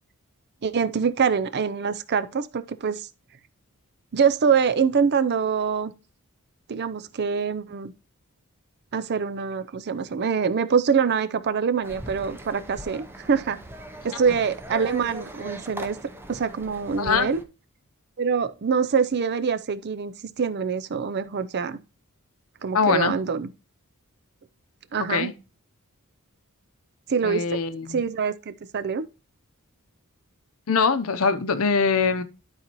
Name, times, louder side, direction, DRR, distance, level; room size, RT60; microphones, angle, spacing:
voice 1, 0.6-3.1 4.1-5.9 6.7-7.9 8.9-13.6 14.0-16.0 16.3-17.4 18.2-21.8 22.6-23.5 24.9-25.3 27.1-27.6 27.9-29.1, right 6 dB, 50° right, 0.5 m, -25 dB
sound 1, 11.8-17.4, right 1 dB, 10° right, 0.7 m, -39 dB
voice 2, 17.0-17.3 22.7-23.1 25.0-25.3 27.2-28.0 30.7-32.2, left 5 dB, 70° left, 0.8 m, -22 dB
12.0 x 4.1 x 3.0 m
head